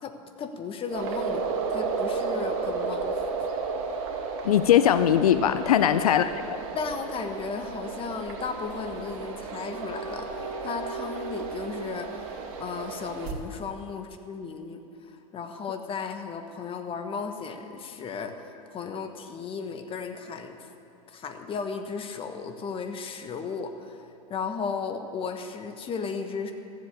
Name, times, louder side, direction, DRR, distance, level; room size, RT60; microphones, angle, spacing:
voice 1, 0.0-3.2 5.8-6.2 6.7-18.3 18.7-20.7 21.1-24.0 24.3-26.5, left 5 dB, 30° left, 6 dB, 1.3 m, -35 dB
sound 1, 0.9-13.3, right 4 dB, 60° right, 2.0 m, -33 dB
voice 2, 4.4-6.6, left 10 dB, 85° left, 12 dB, 0.5 m, -21 dB
14.5 x 7.8 x 8.4 m, 2.7 s
hypercardioid pair, 105°, 18 cm